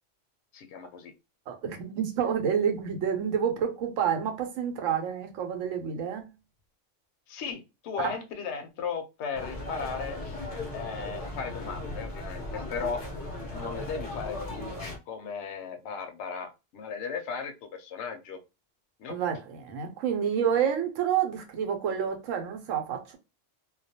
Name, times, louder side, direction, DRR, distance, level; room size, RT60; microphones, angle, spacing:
voice 1, 0.5-1.1 7.3-10.4 10.7-13.0 13.5-14.7 15.1-18.4 19.0-19.2, left 6 dB, 70° left, 0.8 m, -36 dB
voice 2, 1.5-6.3 8.0-8.1 19.1-23.2, right 8 dB, 85° right, 1.0 m, -29 dB
sound 1, 9.3-15.0, left 2 dB, 45° left, 0.5 m, -37 dB
2.3 x 2.2 x 2.7 m
omnidirectional pair, 1.3 m